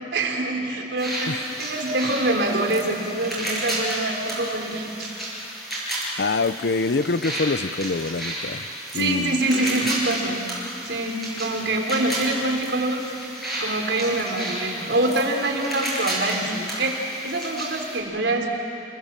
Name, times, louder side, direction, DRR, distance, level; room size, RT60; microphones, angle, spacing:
voice 1, 0.0-5.1 8.9-10.5 10.8-13.2 13.5-18.5, right 2 dB, 85° right, 2 dB, 3.6 m, -25 dB
sound 1, 1.0-18.0, right 1 dB, ahead, 7.9 m, -32 dB
voice 2, 6.2-8.7 8.9-9.4, left 3 dB, 70° left, 14 dB, 0.7 m, -25 dB
30.0 x 21.5 x 7.6 m, 2.8 s
head